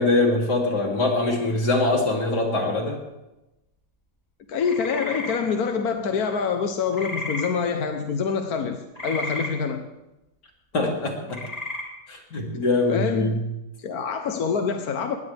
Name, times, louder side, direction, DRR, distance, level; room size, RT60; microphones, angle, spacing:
voice 1, 0.0-3.0 10.7-11.4 12.1-13.4, left 2 dB, 90° left, 3.8 m, -23 dB
voice 2, 4.5-9.9 12.5-12.6 12.9-13.4 13.8-15.2, left 6 dB, 65° left, 1.5 m, -26 dB
sound 1, 4.6-5.4 6.9-7.5 9.0-9.5 11.3-11.8, left 2 dB, 25° left, 3.2 m, -32 dB
21.5 x 19.0 x 3.5 m
omnidirectional pair, 1.7 m